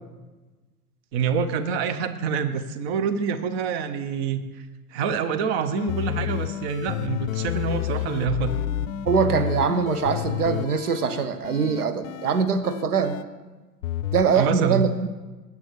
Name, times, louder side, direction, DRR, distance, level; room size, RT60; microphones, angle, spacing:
voice 1, 1.1-4.6 4.9-8.6 14.3-14.9, right 6 dB, 45° right, 12 dB, 0.8 m, -26 dB
sound 1, 5.8-13.2 13.8-14.3, left 12 dB, 60° left, 0.5 m, -30 dB
voice 2, 9.0-13.2 14.1-15.1, right 6 dB, 80° right, 11 dB, 0.7 m, -23 dB
16.5 x 6.9 x 3.2 m, 1.2 s
figure-of-eight pair, 80°, 45 cm